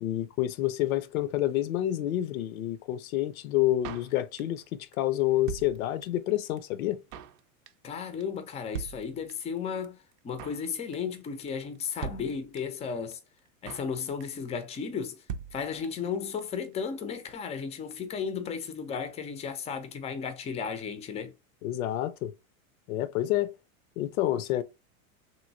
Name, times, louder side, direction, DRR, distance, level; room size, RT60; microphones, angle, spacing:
voice 1, 0.0-7.0 21.6-22.3 22.9-23.5 24.0-24.6, left 14 dB, 85° left, 0.6 m, -28 dB
Drum kit, 3.8-4.7 4.9-5.0 5.2-6.3 6.6-6.7 6.8-7.4 7.7-7.9 8.2-8.3 8.5-8.6 8.7-9.6 9.8-9.9 10.1-10.7 10.9-11.2 11.5-11.6 11.8-11.9 12.0-12.9 13.1-13.2 13.4-13.9 14.2-14.5 14.7-14.8 15.0-15.1 15.3-16.1 16.4-16.5 16.7-16.8, right 7 dB, 70° right, 0.6 m, -40 dB
voice 2, 7.8-10.0 10.2-13.2 13.6-15.2 15.5-21.3, left 6 dB, 15° left, 0.4 m, -34 dB
3.0 x 2.6 x 2.6 m
supercardioid pair, 120°, 41 cm